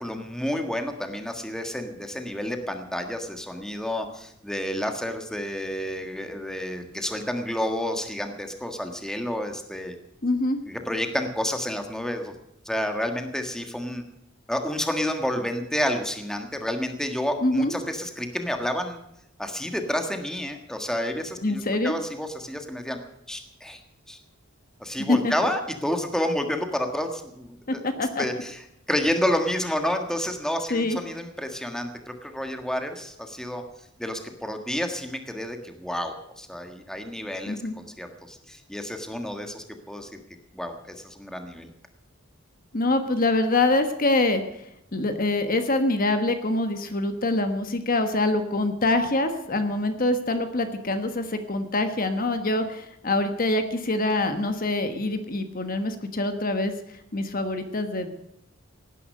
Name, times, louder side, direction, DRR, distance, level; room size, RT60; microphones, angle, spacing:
voice 1, 0.0-9.9 10.7-12.3 12.6-14.0 14.5-19.0 19.4-23.0 23.3-23.8 24.1-24.2 24.8-27.8 28.2-33.6 34.0-40.2 40.5-41.7, left 1 dB, 5° left, 5 dB, 1.6 m, -30 dB
voice 2, 10.2-10.6 17.4-17.7 21.4-21.9 25.1-25.3 27.7-28.2 30.7-31.0 37.5-37.8 42.7-44.4 44.9-56.7 57.1-58.1, left 2 dB, 40° left, 8 dB, 1.4 m, -25 dB
18.0 x 10.0 x 6.6 m, 0.81 s
head